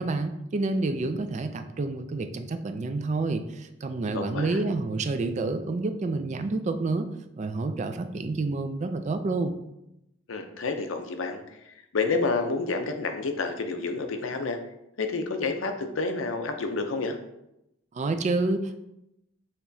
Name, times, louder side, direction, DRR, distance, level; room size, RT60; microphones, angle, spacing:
voice 1, 0.0-7.1 7.4-9.6 17.9-18.8, right 3 dB, 35° right, 8 dB, 0.3 m, -28 dB
voice 2, 4.1-4.6 10.3-14.6 15.0-17.2, left 3 dB, 90° left, 6 dB, 0.6 m, -29 dB
6.5 x 2.9 x 2.7 m, 0.85 s
head